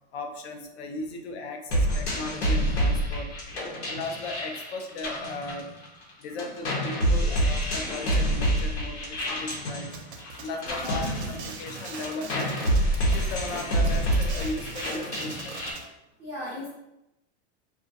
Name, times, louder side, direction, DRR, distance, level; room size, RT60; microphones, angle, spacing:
voice 1, 0.1-3.3 3.9-5.7 6.2-9.9 10.4-12.5 13.1-15.6, left 2 dB, 70° left, 4 dB, 0.5 m, -36 dB
sound 1, 1.7-6.1 6.4-15.7, right 1 dB, 85° left, 1.0 m, -27 dB
sound 2, 9.9-15.9, right 5 dB, 80° right, 0.5 m, -42 dB
voice 2, 10.8-11.3 15.4-15.9 16.2-16.7, equal, 10° right, -11 dB, 0.3 m, -39 dB
2.3 x 2.2 x 2.6 m, 0.90 s
supercardioid pair, 165°, 33 cm